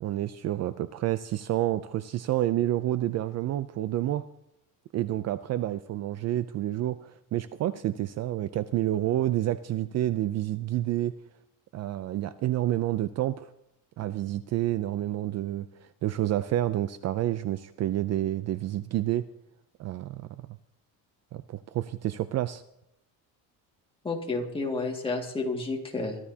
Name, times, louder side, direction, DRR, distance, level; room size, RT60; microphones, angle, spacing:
voice 1, 0.0-4.2 4.9-11.1 11.7-13.5 14.0-19.3 19.8-20.3 21.3-22.6, right 13 dB, 45° right, 13 dB, 0.5 m, -29 dB
voice 2, 24.0-26.2, left 3 dB, 15° left, 1 dB, 2.1 m, -30 dB
23.5 x 12.5 x 2.8 m, 0.86 s
cardioid pair, 155°, 38 cm